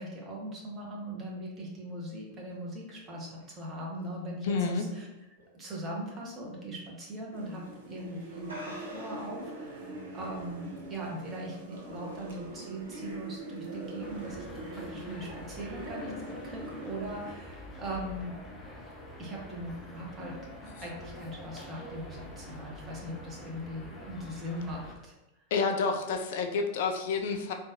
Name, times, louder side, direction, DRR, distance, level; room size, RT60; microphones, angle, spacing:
voice 1, 0.0-5.1 5.5-18.4 19.2-25.1, right 1 dB, 25° right, -3 dB, 0.9 m, -40 dB
sound 1, 2.3-5.4 5.8-6.2 6.5-6.6 7.5-7.7 8.0-8.1 8.4-9.4, equal, 75° right, 1.1 m, -49 dB
voice 2, 4.4-4.8 25.5-27.5, left 4 dB, 55° left, 4 dB, 0.3 m, -29 dB
sound 2, 7.3-17.3, right 1 dB, 55° right, 0.6 m, -43 dB
sound 3, 14.0-25.0, left 1 dB, 15° left, 0.6 m, -46 dB
3.7 x 2.3 x 2.5 m, 0.99 s
figure-of-eight pair, 90°, 0 cm